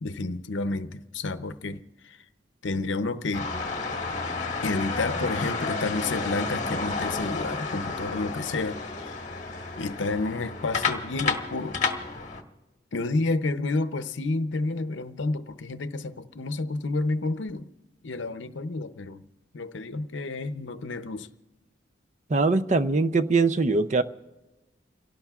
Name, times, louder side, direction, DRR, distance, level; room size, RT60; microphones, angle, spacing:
voice 1, 0.0-2.2 2.6-3.5 4.6-9.2 9.8-11.8 12.9-17.7 18.0-19.2 19.5-21.3, left 3 dB, 75° left, 11 dB, 0.7 m, -30 dB
sound 1, 3.3-12.4, left 4 dB, 40° left, 1.3 m, -31 dB
voice 2, 22.3-24.0, right 3 dB, 40° right, 12 dB, 0.4 m, -22 dB
30.0 x 17.5 x 2.4 m, 1.1 s
head